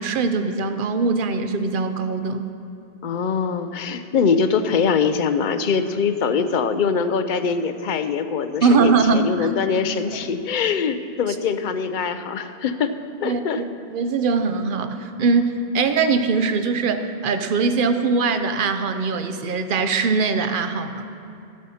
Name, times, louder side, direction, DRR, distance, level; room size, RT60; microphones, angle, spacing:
voice 1, 0.0-2.5 8.6-9.5 13.2-13.4 13.9-21.0, right 4 dB, 55° right, 8 dB, 0.8 m, -21 dB
voice 2, 3.0-12.9 13.2-13.6, left 6 dB, 55° left, 10 dB, 0.6 m, -23 dB
14.0 x 9.6 x 4.2 m, 2.7 s
omnidirectional pair, 1.1 m